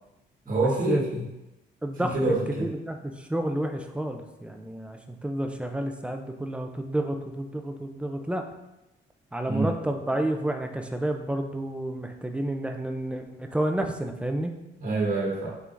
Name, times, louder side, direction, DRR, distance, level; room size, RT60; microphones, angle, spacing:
voice 1, 0.5-1.2 2.1-2.7 9.5-9.7 14.8-15.5, right 2 dB, 45° right, -4 dB, 1.4 m, -26 dB
voice 2, 1.8-2.2 2.6-8.4 9.3-14.5, right 1 dB, 5° right, 4 dB, 0.4 m, -30 dB
4.5 x 3.5 x 2.5 m, 0.95 s
cardioid pair, 90°, 20 cm